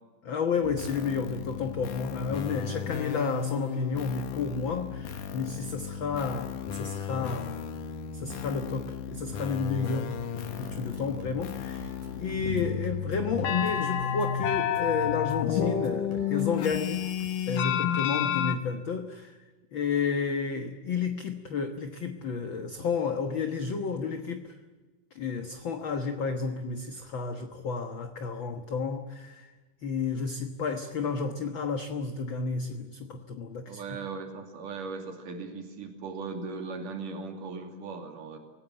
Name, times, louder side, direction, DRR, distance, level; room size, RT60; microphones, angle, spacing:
voice 1, 0.2-7.6 8.1-17.1 17.5-19.4 19.7-24.6 25.1-29.5 29.8-33.8, left 5 dB, 50° left, 7 dB, 1.7 m, -31 dB
sound 1, 0.6-18.6, left 8 dB, 85° left, 3.0 m, -32 dB
sound 2, 9.6-17.3, right 1 dB, 70° right, 6.8 m, -48 dB
voice 2, 33.7-38.4, right 4 dB, 90° right, 5 dB, 4.2 m, -38 dB
25.5 x 19.5 x 10.0 m, 1.3 s
omnidirectional pair, 3.6 m